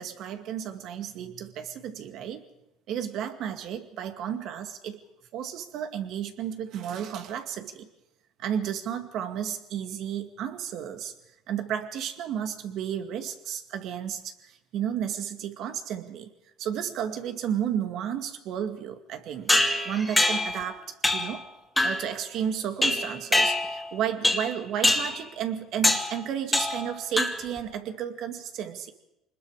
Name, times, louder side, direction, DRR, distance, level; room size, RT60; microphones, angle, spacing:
voice 1, 0.0-2.4 2.9-5.0 5.3-7.9 8.4-11.1 11.5-16.3 16.6-19.5 19.8-21.4 21.8-28.9, right 9 dB, 65° right, 7 dB, 2.1 m, -33 dB
sound 1, 19.5-20.6 21.0-21.4 21.8-22.1 22.8-23.9 24.2-24.5 24.8-25.2 25.8-26.1 26.5-26.9 27.2-27.6, left 1 dB, 5° left, 2.5 m, -24 dB
25.5 x 20.5 x 5.0 m, 0.87 s
supercardioid pair, 95°, 0 cm